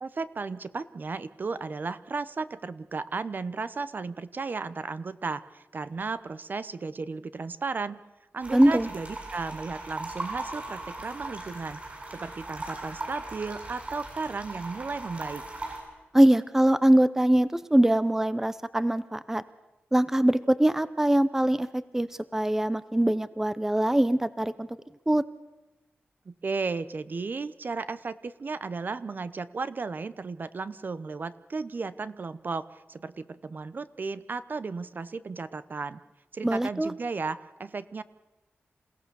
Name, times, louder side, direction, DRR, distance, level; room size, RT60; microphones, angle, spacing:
voice 1, 0.0-8.0 8.3-11.8 12.1-15.4 26.3-36.0 36.3-38.0, right 4 dB, 45° right, 14 dB, 0.8 m, -34 dB
sound 1, 8.4-15.8, right 2 dB, 30° right, 8.0 m, -39 dB
voice 2, 8.5-8.9 16.1-19.4 19.9-24.8 25.1-25.2 36.4-36.9, right 1 dB, 10° right, 15 dB, 0.7 m, -23 dB
28.0 x 17.0 x 6.9 m, 1.0 s
wide cardioid pair, 100°, 4 cm